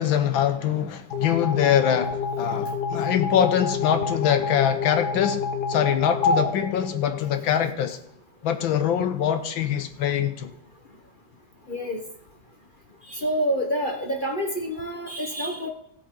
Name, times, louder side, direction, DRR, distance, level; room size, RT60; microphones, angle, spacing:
voice 1, 0.0-8.0 8.4-10.5, left 9 dB, 75° left, 1.5 m, -24 dB
sound 1, 1.1-7.6, left 4 dB, 55° left, 1.9 m, -28 dB
voice 2, 11.7-12.0 13.1-15.7, equal, 35° left, 0.9 m, -27 dB
16.0 x 8.3 x 3.8 m
omnidirectional pair, 2.3 m